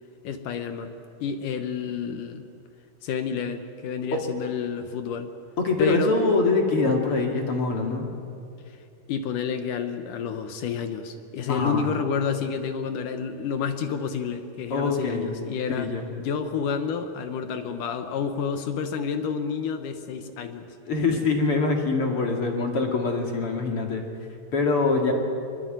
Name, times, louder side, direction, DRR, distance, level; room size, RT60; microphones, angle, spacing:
voice 1, 0.2-1.0 1.2-2.5 3.0-5.3 5.8-6.2 9.1-15.9 16.2-20.7, left 6 dB, 70° left, 8 dB, 2.2 m, -29 dB
voice 2, 5.6-8.1 11.5-11.9 14.7-15.3 15.7-16.1 20.9-24.0 24.5-25.1, left 3 dB, 40° left, 2 dB, 2.8 m, -24 dB
24.0 x 22.5 x 9.1 m, 2.5 s
omnidirectional pair, 4.7 m